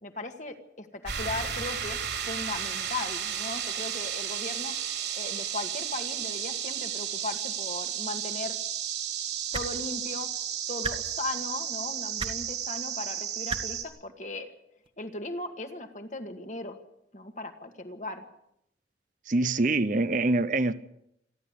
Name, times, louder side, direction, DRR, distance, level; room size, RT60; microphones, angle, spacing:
voice 1, 0.0-2.0 2.3-4.7 5.2-8.6 9.5-10.3 10.7-14.5 15.0-16.8 17.1-18.2, left 2 dB, 40° left, 6 dB, 2.0 m, -37 dB
sound 1, 1.0-13.8, right 9 dB, 70° right, 3.8 m, -33 dB
sound 2, 9.5-9.7 10.8-10.9 12.2-12.3 13.5-13.6 14.8-14.9, right 4 dB, 30° right, 1.4 m, -32 dB
voice 2, 19.3-20.7, right 2 dB, 45° right, 13 dB, 0.8 m, -25 dB
27.5 x 11.5 x 8.3 m, 0.78 s
head